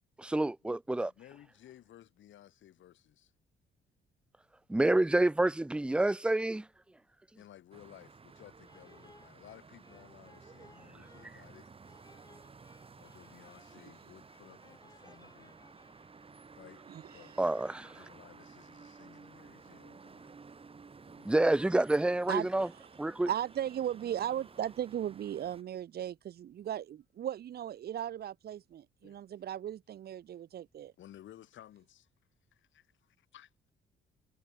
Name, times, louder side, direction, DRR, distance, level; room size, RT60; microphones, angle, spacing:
voice 1, 0.2-1.1 4.7-6.7 17.4-17.9 21.2-22.7 23.0-23.3, right 2 dB, 5° right, 0.4 m, -28 dB
voice 2, 1.1-3.3 7.3-11.7 13.0-15.6 16.6-16.8 17.1-17.3 17.8-20.4 21.1-21.4 29.0-29.2 31.0-32.0 32.7-32.9 33.2-33.5, left 12 dB, 75° left, 2.5 m, -56 dB
sound 1, 7.7-25.6, right 4 dB, 30° right, 1.5 m, -54 dB
sound 2, 8.6-16.7, left 2 dB, 20° left, 6.0 m, -64 dB
voice 3, 23.3-30.9, right 10 dB, 55° right, 0.6 m, -37 dB
cardioid pair, 90°, 20 cm